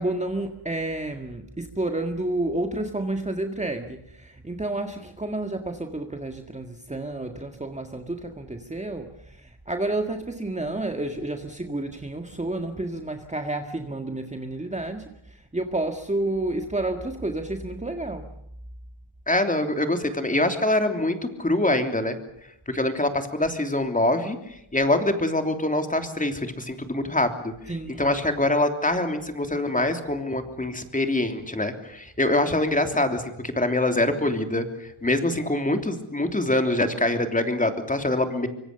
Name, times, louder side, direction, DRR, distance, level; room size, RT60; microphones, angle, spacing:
voice 1, 0.0-18.3 27.7-28.2, right 2 dB, 15° right, 5 dB, 1.8 m, -30 dB
voice 2, 19.3-22.1 22.7-24.4 24.7-27.5 28.0-38.5, left 1 dB, 15° left, 6 dB, 3.2 m, -24 dB
25.0 x 25.0 x 6.8 m, 0.78 s
wide cardioid pair, 115°, 49 cm